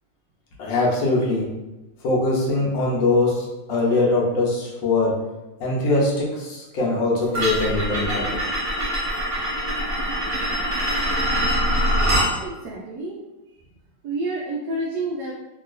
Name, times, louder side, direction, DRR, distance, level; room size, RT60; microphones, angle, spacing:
voice 1, 0.6-1.5 2.0-5.2 5.6-8.2, left 2 dB, 75° left, -3 dB, 1.4 m, -22 dB
sound 1, 7.3-12.3, equal, 40° right, 0.9 m, -23 dB
voice 2, 12.4-13.2 13.5-13.6 14.0-15.3, right 2 dB, 80° right, -4 dB, 0.8 m, -29 dB
3.0 x 2.8 x 2.4 m, 1.0 s
omnidirectional pair, 2.2 m